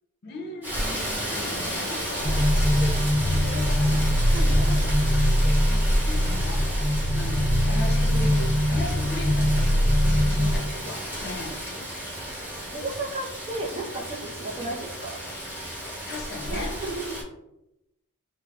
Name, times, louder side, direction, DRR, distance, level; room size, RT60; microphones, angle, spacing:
voice 1, 0.2-0.8 1.3-11.9 16.1-16.8, left 2 dB, 50° left, 2 dB, 0.5 m, -38 dB
Rain, 0.6-17.2, equal, 10° right, 0.9 m, -32 dB
voice 2, 0.8-1.7 4.3-4.9 10.9-11.3 12.7-15.3 16.5-17.2, right 2 dB, 25° right, 0 dB, 0.4 m, -35 dB
sound 1, 2.2-10.6, equal, 70° right, 0.9 m, -22 dB
2.2 x 2.0 x 3.4 m, 0.88 s
head